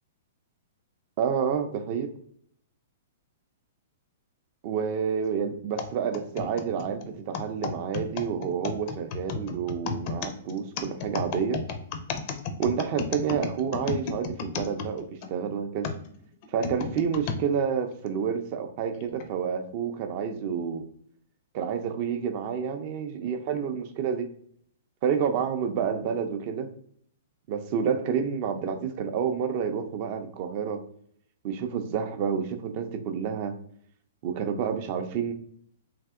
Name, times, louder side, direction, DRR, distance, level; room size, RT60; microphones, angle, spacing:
voice 1, 1.2-2.1 4.6-11.6 12.6-15.9 16.5-20.9 21.5-24.3 25.0-26.7 27.5-30.8 31.4-33.5 34.2-35.3, right 7 dB, 45° right, 8 dB, 0.4 m, -29 dB
sound 1, 5.8-15.3 15.8-17.4 18.1-18.2 19.0-19.3, left 5 dB, 45° left, 0.4 m, -33 dB
3.3 x 2.7 x 2.4 m, 0.64 s
hypercardioid pair, 120°, 0 cm